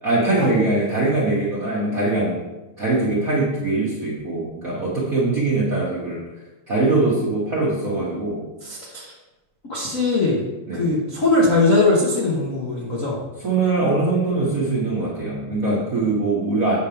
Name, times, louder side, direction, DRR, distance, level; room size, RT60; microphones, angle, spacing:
voice 1, 0.0-2.4 2.8-6.2 6.7-8.4 10.7-10.9 13.4-16.8, right 2 dB, 50° right, -7 dB, 1.0 m, -22 dB
voice 2, 8.6-9.1 9.7-10.4 10.7-13.2, left 2 dB, 75° left, -6 dB, 0.7 m, -20 dB
7.9 x 3.4 x 5.7 m, 1.1 s
omnidirectional pair, 3.4 m